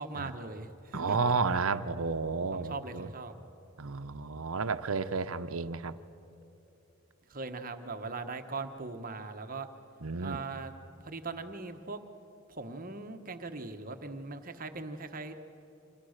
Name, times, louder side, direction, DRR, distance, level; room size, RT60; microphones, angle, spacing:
voice 1, 0.0-1.3 2.5-3.3 7.3-9.7 10.2-10.7 11.0-12.0 12.5-15.4, right 3 dB, 40° right, 7 dB, 1.3 m, -40 dB
voice 2, 0.9-3.1 3.8-6.0 10.0-10.4, right 4 dB, 80° right, 11 dB, 0.8 m, -32 dB
29.5 x 26.0 x 6.6 m, 2.7 s
head